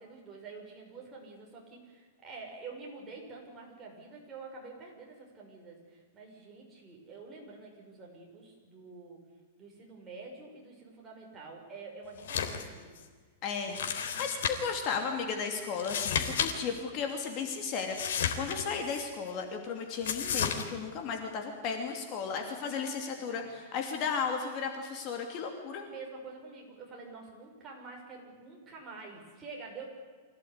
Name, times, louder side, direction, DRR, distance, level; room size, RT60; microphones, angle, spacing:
voice 1, 0.0-9.2 9.6-12.9 13.5-13.7 14.1-14.2 22.6-22.8 25.9-29.9, right 4 dB, 15° right, -2 dB, 6.2 m, -47 dB
sound 1, 12.2-12.7 13.0-13.1 13.7-14.8 15.7-16.5 16.8-16.9 17.9-19.0 20.0-20.6, left 7 dB, 80° left, 3.5 m, -32 dB
voice 2, 13.4-25.8, left 6 dB, 35° left, 4 dB, 2.8 m, -35 dB
25.5 x 17.0 x 9.7 m, 1.5 s
supercardioid pair, 165°, 0 cm